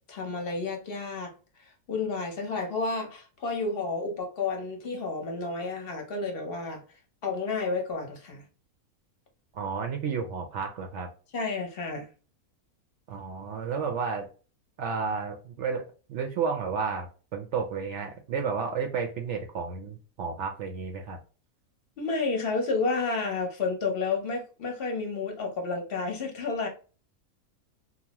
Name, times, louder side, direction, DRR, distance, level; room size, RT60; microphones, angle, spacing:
voice 1, 0.1-1.3 1.9-6.8 7.2-8.4 11.3-12.1 22.0-26.7, left 4 dB, 50° left, 0.8 m, -31 dB
voice 2, 9.5-11.1 13.1-14.3 14.8-21.2, right 5 dB, 65° right, 0.8 m, -32 dB
2.8 x 2.1 x 2.8 m
omnidirectional pair, 1.5 m